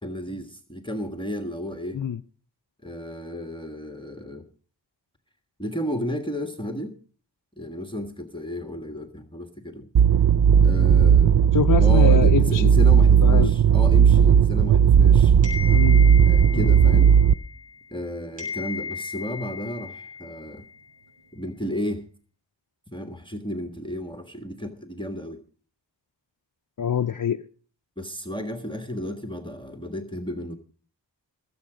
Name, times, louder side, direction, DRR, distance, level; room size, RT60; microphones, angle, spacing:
voice 1, 0.0-2.0 2.8-4.4 5.6-6.9 7.6-9.9 10.6-11.4 11.8-15.3 16.3-17.2 17.9-20.7 21.3-22.0 22.9-25.4 28.0-30.6, equal, 10° left, 1.5 m, -33 dB
sound 1, 9.9-17.3, right 8 dB, 55° right, 0.6 m, -16 dB
voice 2, 11.4-12.7 13.2-13.5 15.7-16.1 16.5-16.7 26.8-27.4, left 8 dB, 50° left, 0.6 m, -25 dB
sound 2, 15.4-18.0 18.4-20.9, left 5 dB, 85° right, 5.6 m, -36 dB
20.0 x 8.0 x 5.0 m
wide cardioid pair, 45°, 43 cm